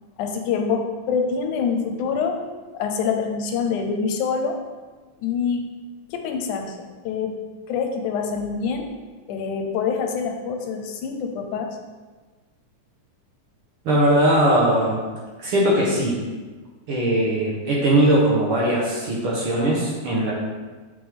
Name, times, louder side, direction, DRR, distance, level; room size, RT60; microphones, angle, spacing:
voice 1, 0.2-2.4 2.7-4.6 5.2-5.7 6.1-6.8 7.1-7.4 7.7-8.9 9.3-11.8, left 5 dB, 90° left, 4 dB, 2.2 m, -25 dB
voice 2, 13.8-15.0 15.4-16.2 16.9-20.3, right 1 dB, 60° right, -4 dB, 1.6 m, -20 dB
7.3 x 5.2 x 3.5 m, 1.3 s
omnidirectional pair, 3.4 m